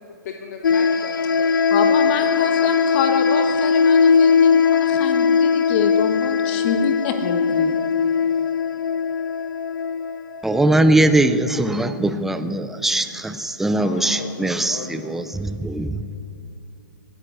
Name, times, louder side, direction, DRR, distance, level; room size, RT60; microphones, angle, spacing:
voice 1, 0.2-1.7 1.9-3.3 13.7-15.2, left 5 dB, 55° left, 2 dB, 1.6 m, -37 dB
sound 1, 0.6-11.1, left 6 dB, 85° left, 0.5 m, -19 dB
voice 2, 1.7-7.8, left 6 dB, 35° left, 6 dB, 1.5 m, -26 dB
voice 3, 10.4-16.0, right 1 dB, 5° right, 10 dB, 0.5 m, -20 dB
19.0 x 9.6 x 7.8 m, 2.7 s
hypercardioid pair, 145°, 11 cm